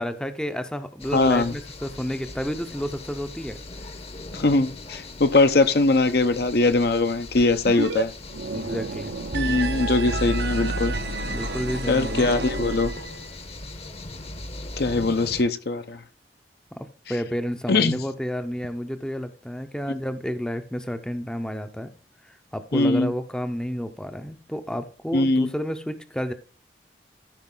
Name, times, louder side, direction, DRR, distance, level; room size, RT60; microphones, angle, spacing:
voice 1, 0.0-3.6 8.5-9.1 11.3-12.3 16.7-21.9 22.2-26.3, equal, 5° left, 0.6 m, -31 dB
sound 1, 1.0-15.4, left 2 dB, 35° left, 0.9 m, -40 dB
voice 2, 1.1-1.5 4.3-8.1 9.3-11.0 11.9-12.9 14.8-16.0 17.7-18.0 22.7-23.1 25.1-25.5, left 3 dB, 60° left, 0.8 m, -21 dB
sound 2, 7.6-8.0 8.3-13.3, right 2 dB, 65° right, 0.8 m, -29 dB
13.5 x 5.3 x 3.8 m
head